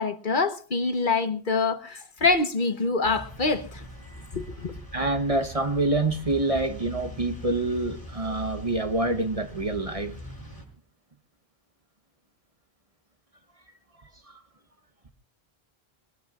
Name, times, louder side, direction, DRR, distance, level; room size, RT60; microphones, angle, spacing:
voice 1, 0.0-3.8 4.3-4.7, left 3 dB, 50° left, 1.3 m, -25 dB
sound 1, 3.0-10.7, left 1 dB, 20° left, 5.7 m, -42 dB
voice 2, 4.9-10.2 14.3-14.4, right 2 dB, 35° right, 1.2 m, -26 dB
23.0 x 19.5 x 2.4 m
omnidirectional pair, 1.1 m